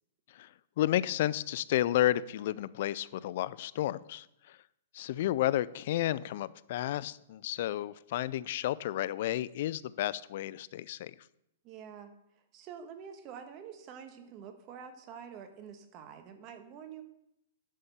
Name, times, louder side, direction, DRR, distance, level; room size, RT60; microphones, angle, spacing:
voice 1, 0.8-4.6 4.9-11.1, left 13 dB, 55° left, 18 dB, 0.4 m, -31 dB
voice 2, 11.6-17.0, right 7 dB, 35° right, 7 dB, 1.3 m, -47 dB
11.0 x 4.2 x 6.8 m, 0.80 s
hypercardioid pair, 145°, 0 cm